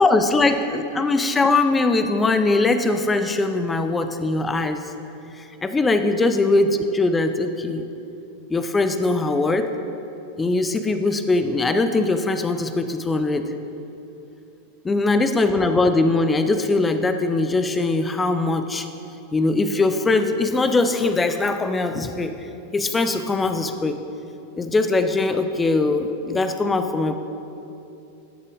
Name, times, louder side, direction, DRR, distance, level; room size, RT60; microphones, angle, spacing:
voice 1, 0.0-4.8 5.4-7.9 8.5-9.7 10.4-13.5 14.8-18.9 19.3-22.4 22.7-24.0 24.6-27.2, left 3 dB, 15° left, 8 dB, 0.5 m, -21 dB
13.0 x 6.5 x 3.6 m, 2.8 s
figure-of-eight pair, 90°, 0 cm